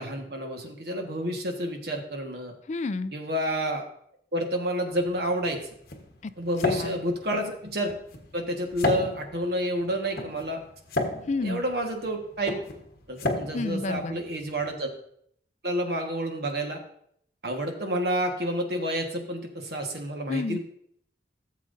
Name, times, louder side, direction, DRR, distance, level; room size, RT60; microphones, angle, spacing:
voice 1, 0.0-2.5 3.1-3.8 4.3-5.6 6.4-7.9 8.3-10.6 11.4-12.5 13.1-14.9 15.6-16.8 17.4-20.6, equal, 60° right, 3 dB, 1.5 m, -29 dB
voice 2, 2.7-3.1 6.2-6.3 6.7-7.0 11.3-11.6 13.5-14.2 20.3-20.6, left 3 dB, 40° left, 13 dB, 0.4 m, -30 dB
sound 1, 4.9-14.7, left 1 dB, 55° left, 1.2 m, -33 dB
15.0 x 7.4 x 2.6 m, 0.68 s
head